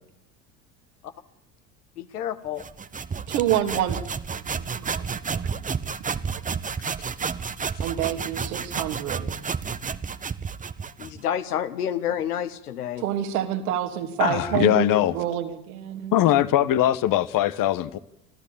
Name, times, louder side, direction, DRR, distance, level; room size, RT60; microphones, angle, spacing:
voice 1, 2.0-2.6 11.0-13.0, left 9 dB, 80° left, 1.6 m, -29 dB
sound 1, 2.6-11.2, right 5 dB, 15° right, 1.0 m, -31 dB
voice 2, 3.3-4.0 4.3-5.0 5.4-5.5 7.8-9.4 13.0-16.1, right 11 dB, 70° right, 2.8 m, -28 dB
voice 3, 14.2-15.1 16.1-18.0, left 13 dB, 45° left, 1.3 m, -21 dB
26.0 x 14.0 x 7.1 m
hypercardioid pair, 70°, 45 cm